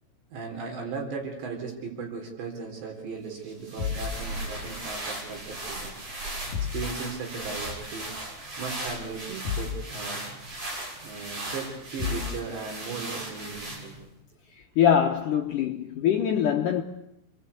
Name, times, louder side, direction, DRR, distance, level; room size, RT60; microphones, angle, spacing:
voice 1, 0.3-6.0 6.5-8.1 8.6-10.3 11.0-14.0, right 5 dB, 70° right, 5.9 m, -37 dB
sound 1, 3.5-14.1, right 1 dB, 40° right, 7.7 m, -37 dB
sound 2, 3.8-4.1 6.5-6.9 9.4-9.8 12.0-12.4, left 8 dB, 40° left, 6.4 m, -31 dB
voice 2, 14.8-16.8, left 8 dB, 75° left, 1.9 m, -23 dB
28.5 x 22.5 x 8.3 m
omnidirectional pair, 5.4 m